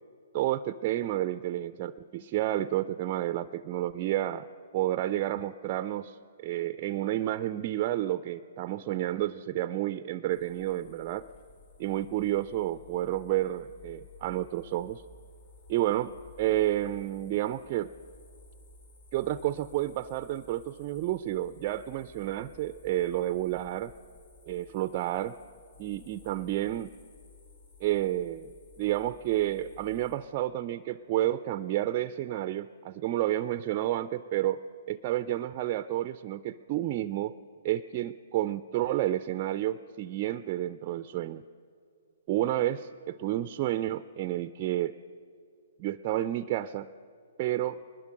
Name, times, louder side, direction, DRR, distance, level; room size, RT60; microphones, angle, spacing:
voice 1, 0.3-4.5 4.7-11.3 11.8-15.0 15.7-17.9 19.1-23.9 24.5-25.4 25.8-26.9 27.8-28.5 28.8-34.6 34.9-37.4 37.6-41.4 42.3-44.9 45.8-46.9 47.4-47.8, right 14 dB, 35° right, 13 dB, 0.4 m, -30 dB
sound 1, 10.3-30.2, left 4 dB, 50° left, 4.5 m, -55 dB
22.0 x 20.5 x 6.5 m, 2.5 s
figure-of-eight pair, 120°, 0 cm